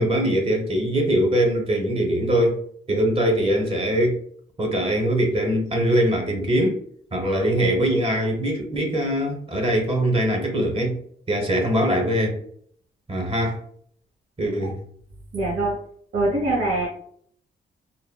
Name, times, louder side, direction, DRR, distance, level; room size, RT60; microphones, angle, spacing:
voice 1, 0.0-2.6 2.9-4.2 4.6-6.8 7.1-11.0 11.3-12.4 13.1-13.6 14.4-14.8, right 1 dB, 30° right, 2 dB, 0.9 m, -22 dB
voice 2, 15.3-15.7 16.1-16.9, right 2 dB, 80° right, -4 dB, 1.1 m, -23 dB
3.7 x 2.2 x 2.2 m, 0.62 s
cardioid pair, 75°, 21 cm